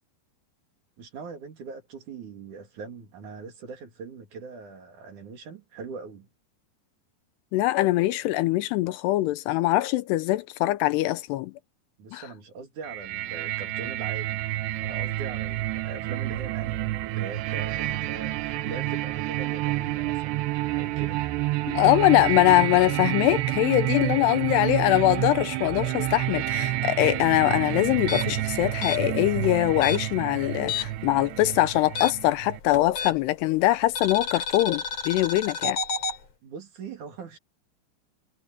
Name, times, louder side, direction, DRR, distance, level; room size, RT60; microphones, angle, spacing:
voice 1, 1.0-6.3 12.0-14.4 14.8-21.2 36.4-37.4, right 5 dB, 50° right, 3.4 m, -41 dB
voice 2, 7.5-11.5 12.1-12.2 21.7-35.8, left 16 dB, 80° left, 2.6 m, -23 dB
sound 1, 12.8-32.6, right 16 dB, 80° right, 2.9 m, -29 dB
sound 2, 28.0-31.1 31.4-33.4 34.0-36.2, left 4 dB, 40° left, 4.4 m, -31 dB
omnidirectional pair, 5.2 m